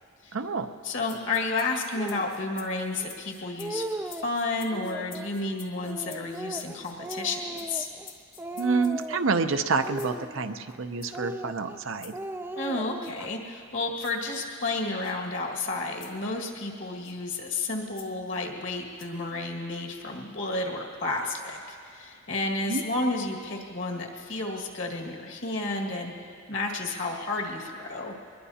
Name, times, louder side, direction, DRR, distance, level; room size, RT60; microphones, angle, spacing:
voice 1, 0.3-0.7 8.6-12.1 22.7-22.8, right 4 dB, 75° right, 8 dB, 0.7 m, -28 dB
voice 2, 0.8-7.9 12.6-28.1, left 2 dB, 65° left, 0 dB, 1.9 m, -31 dB
sound 1, 1.0-9.2 9.8-10.2 11.0-11.3 12.0-12.2 13.0-13.2 14.0-14.2 15.0-15.1 16.0-16.2 17.0-17.2 17.9-18.1 19.0-19.2, left 8 dB, 45° left, 1.2 m, -50 dB
Speech, 2.0-2.3 3.0-3.1 3.4-4.3 4.7-5.3 5.8-8.1 8.4-9.3 9.8-10.8 11.1-11.8 12.1-13.3, right 1 dB, 10° right, 0.3 m, -37 dB
22.0 x 21.0 x 2.8 m, 2.4 s
head